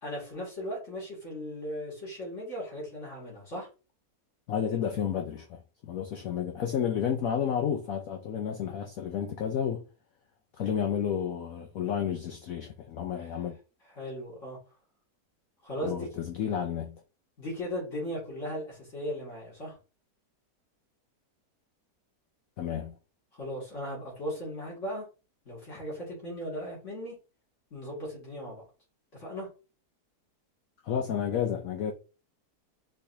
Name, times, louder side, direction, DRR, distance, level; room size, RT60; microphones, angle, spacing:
voice 1, 0.0-3.7 14.0-14.6 15.6-16.1 17.4-19.7 23.4-25.1 25.4-27.1 27.7-28.6 29.2-29.5, equal, 45° left, 2.9 m, -37 dB
voice 2, 4.5-9.8 10.6-13.6 15.8-17.0 22.6-22.9 30.8-31.9, left 8 dB, 65° left, 0.9 m, -31 dB
5.4 x 3.2 x 2.8 m
omnidirectional pair, 1.8 m